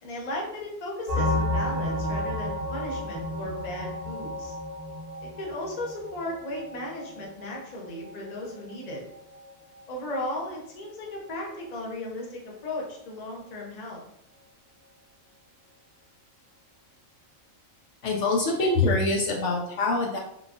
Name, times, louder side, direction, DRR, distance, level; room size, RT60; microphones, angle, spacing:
voice 1, 0.0-4.5 5.2-9.0 9.9-14.0, left 1 dB, 40° left, -2 dB, 0.7 m, -36 dB
sound 1, 1.1-10.4 10.6-10.9 11.1-11.3 11.6-11.8, left 1 dB, 50° right, 0.7 m, -33 dB
voice 2, 18.0-20.2, left 3 dB, 70° left, -1 dB, 0.9 m, -24 dB
3.7 x 2.3 x 2.4 m, 0.74 s
omnidirectional pair, 1.4 m